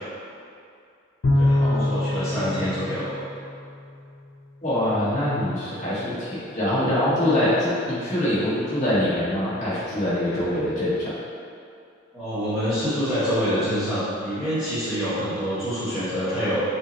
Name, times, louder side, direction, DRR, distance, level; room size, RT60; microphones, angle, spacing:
Bowed string instrument, 1.2-3.9, left 1 dB, 75° left, 0.6 m, -24 dB
voice 1, 1.3-3.1 12.1-16.6, equal, ahead, -16 dB, 1.1 m, -26 dB
voice 2, 4.6-11.2, left 1 dB, 35° left, -10 dB, 1.1 m, -24 dB
5.3 x 2.1 x 2.9 m, 2.5 s
head